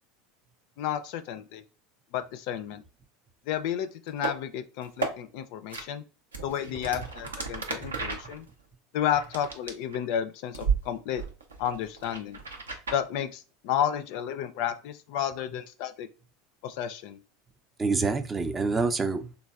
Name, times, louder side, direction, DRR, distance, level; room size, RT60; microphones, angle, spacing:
voice 1, 0.8-1.6 2.1-2.8 3.5-6.0 6.4-8.5 8.9-11.2 11.6-12.4 12.9-16.1 16.6-17.2, left 10 dB, 60° left, 0.3 m, -31 dB
sound 1, 4.1-4.3 4.8-5.1 5.7-5.8 6.3-10.2 10.5-10.8 11.1-13.0, right 5 dB, 90° right, 0.5 m, -33 dB
voice 2, 7.5-8.1 17.8-19.4, right 4 dB, 20° right, 0.4 m, -28 dB
3.2 x 2.2 x 2.3 m
hypercardioid pair, 85°, 0 cm